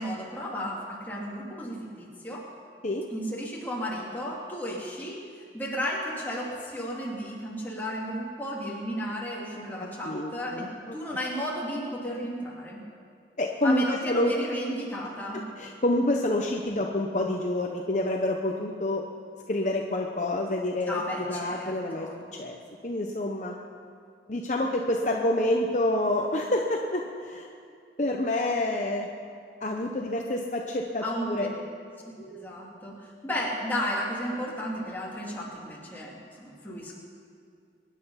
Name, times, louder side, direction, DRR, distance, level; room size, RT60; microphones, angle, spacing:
voice 1, 0.0-2.5 3.1-10.7 10.9-12.8 13.6-15.4 20.9-22.2 31.0-31.5 32.2-37.0, equal, 10° left, -5 dB, 2.8 m, -33 dB
voice 2, 9.5-11.0 13.4-14.3 15.3-19.0 19.5-21.0 21.3-22.1 22.4-22.6 22.8-23.5 24.3-27.5 28.0-29.1 29.6-31.5, left 1 dB, 40° left, 1 dB, 0.9 m, -28 dB
23.5 x 10.5 x 5.7 m, 2.3 s
head